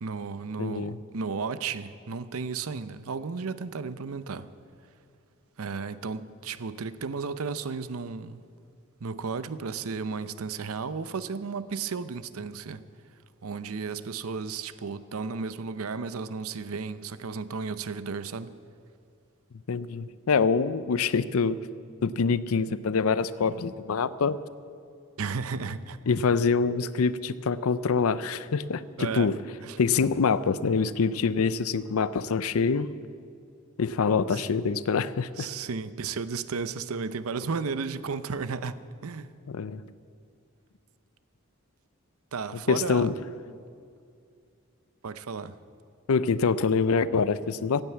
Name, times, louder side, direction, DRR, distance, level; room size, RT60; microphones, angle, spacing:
voice 1, 0.0-4.5 5.6-8.4 9.0-12.8 13.4-18.5 25.2-26.0 29.0-29.3 29.6-29.8 34.3-34.4 35.4-39.3 42.3-43.1 45.0-45.6, right 5 dB, 80° right, 14 dB, 0.6 m, -34 dB
voice 2, 0.6-1.0 19.7-21.6 22.0-24.4 26.1-29.3 29.8-32.9 33.8-35.5 39.5-39.8 42.7-43.1 46.1-47.8, left 5 dB, 75° left, 16 dB, 0.5 m, -25 dB
15.0 x 9.1 x 8.3 m, 2.4 s
head